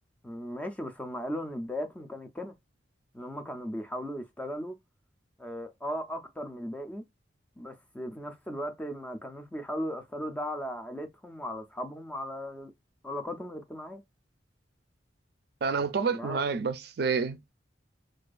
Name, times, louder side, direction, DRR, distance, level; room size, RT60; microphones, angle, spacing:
voice 1, 0.2-2.5 3.1-4.8 5.4-7.0 7.6-12.7 13.0-14.0 16.1-16.4, equal, 10° left, 0.4 m, -37 dB
voice 2, 15.6-17.5, right 5 dB, 55° right, 0.4 m, -29 dB
2.3 x 2.3 x 2.4 m
head